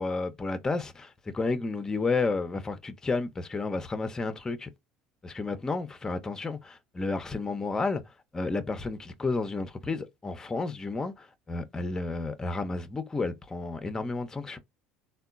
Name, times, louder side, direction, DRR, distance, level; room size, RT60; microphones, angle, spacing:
voice 1, 0.0-4.7 5.2-8.0 8.3-14.6, left 3 dB, 20° left, 0.5 m, -31 dB
3.6 x 2.2 x 2.4 m
hypercardioid pair, 80°, 3 cm